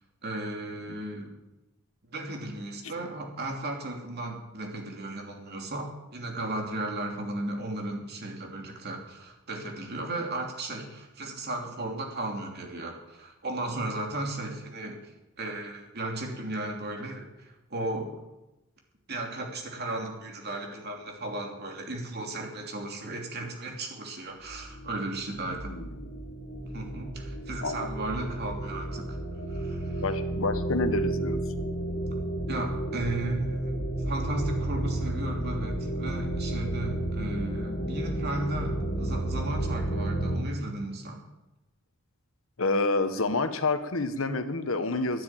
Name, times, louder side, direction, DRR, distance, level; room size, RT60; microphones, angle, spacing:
voice 1, 0.2-1.4 2.1-18.2 19.1-25.8 26.7-29.2 29.5-30.1 32.5-41.2, right 2 dB, 50° right, 2 dB, 2.9 m, -35 dB
sound 1, 24.5-40.4, right 1 dB, 50° left, 2.7 m, -32 dB
voice 2, 30.0-31.4 42.6-45.2, left 3 dB, 70° left, 10 dB, 1.1 m, -28 dB
12.5 x 9.7 x 9.0 m, 0.98 s
head